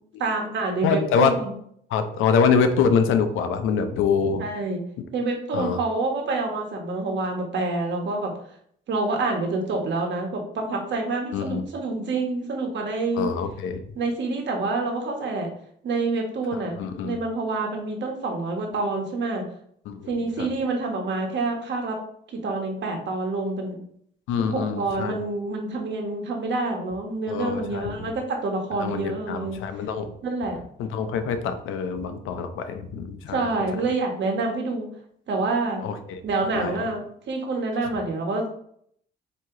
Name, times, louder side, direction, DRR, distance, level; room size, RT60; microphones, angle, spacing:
voice 1, 0.2-1.5 4.4-4.8 5.1-8.3 8.9-13.3 13.9-15.5 15.8-16.7 17.0-19.5 20.1-22.0 22.3-23.8 24.4-29.6 30.2-30.6 33.3-34.9 35.3-35.8 36.2-38.5, right 3 dB, 65° right, 2 dB, 1.2 m, -27 dB
voice 2, 0.8-1.3 1.9-4.4 5.5-5.8 11.3-11.6 13.2-13.8 16.5-17.2 19.9-20.1 20.4-20.5 24.3-25.2 27.3-28.1 28.8-30.1 30.8-33.5 33.7-33.8 35.8-36.2 36.5-36.8, left 6 dB, 85° left, 9 dB, 0.6 m, -25 dB
4.5 x 2.9 x 3.7 m, 0.67 s
cardioid pair, 90°, 20 cm